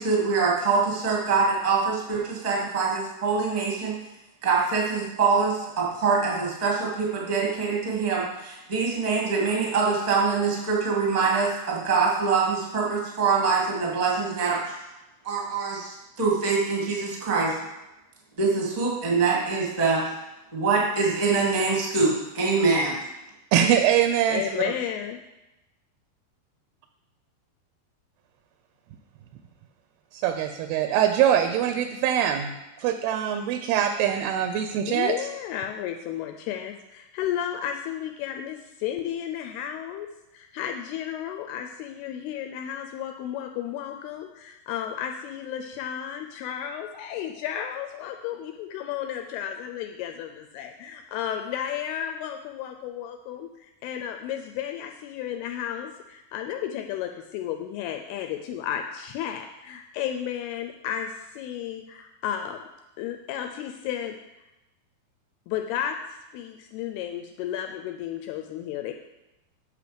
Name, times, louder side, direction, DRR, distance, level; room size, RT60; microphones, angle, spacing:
voice 1, 0.0-3.9 4.4-14.7 15.2-17.6 18.4-20.0 20.5-23.0, right 4 dB, 35° right, -3 dB, 0.6 m, -24 dB
voice 2, 23.5-24.4 30.2-32.5 32.8-35.1, right 10 dB, 80° right, 7 dB, 2.4 m, -23 dB
voice 3, 24.3-25.2 34.9-40.1 40.3-62.6 63.0-64.2 65.5-66.0 66.3-68.9, left 10 dB, 80° left, 4 dB, 2.4 m, -33 dB
8.2 x 6.7 x 5.0 m, 0.97 s
omnidirectional pair, 4.8 m